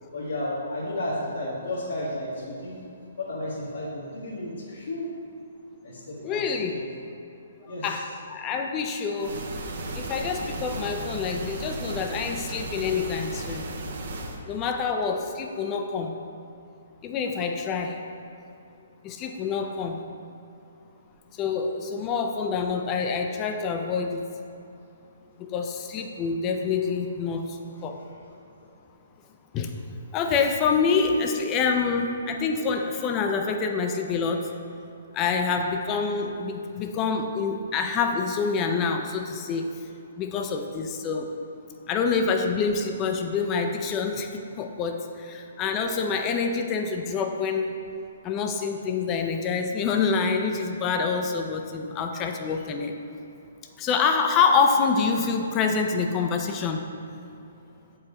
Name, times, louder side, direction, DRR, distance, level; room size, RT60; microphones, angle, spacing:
voice 1, 0.1-2.8 3.2-5.1 5.8-6.4 6.7-6.8 7.7-7.9, left 1 dB, 85° left, -8 dB, 1.3 m, -32 dB
voice 2, 6.2-6.8 7.6-9.3 10.0-13.6 14.5-16.2 17.0-18.0 19.0-20.0 21.3-24.2 25.4-28.0 29.5-29.7 30.1-34.5 35.1-39.7 40.2-41.3 41.9-47.7 48.2-52.9 53.8-56.9, left 5 dB, 25° left, 4 dB, 0.4 m, -26 dB
sound 1, 9.2-14.4, right 2 dB, 65° right, 0.7 m, -35 dB
7.3 x 4.7 x 3.0 m, 2.6 s
hypercardioid pair, 145°, 0 cm